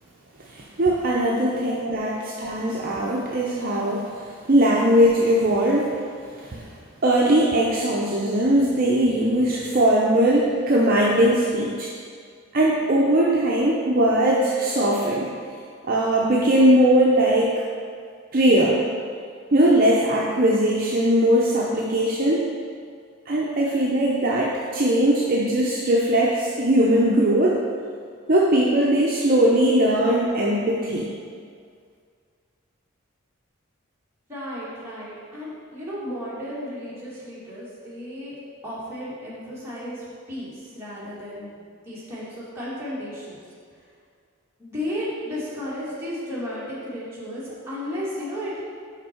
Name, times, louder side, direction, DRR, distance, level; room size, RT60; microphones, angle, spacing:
voice 1, 0.5-6.0 6.4-6.7 7.0-11.9 12.5-15.3 15.8-17.5 18.3-18.8 19.5-22.4 23.3-27.6 28.3-31.1, right 1 dB, 40° right, -4 dB, 0.6 m, -20 dB
voice 2, 1.4-2.4 34.3-38.3 38.6-41.5 41.9-43.4 44.6-48.6, equal, 10° right, -10 dB, 1.8 m, -34 dB
5.9 x 5.3 x 4.4 m, 2.2 s
head